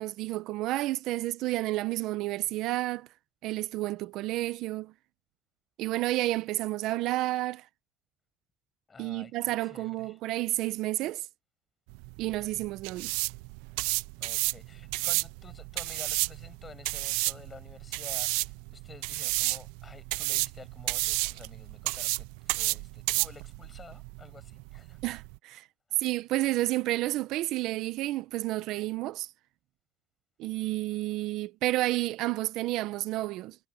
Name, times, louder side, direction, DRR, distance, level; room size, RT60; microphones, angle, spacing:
voice 1, 0.0-3.1 3.4-4.9 5.8-7.7 9.0-11.3 12.2-13.2 25.0-25.7 26.0-29.3 30.4-33.6, right 17 dB, 70° right, 0.9 m, -30 dB
voice 2, 8.9-10.2 14.2-25.0 25.9-26.0, left 5 dB, 25° left, 7.6 m, -51 dB
sound 1, 11.9-25.4, right 25 dB, 85° right, 0.4 m, -32 dB
supercardioid pair, 95°, 0 cm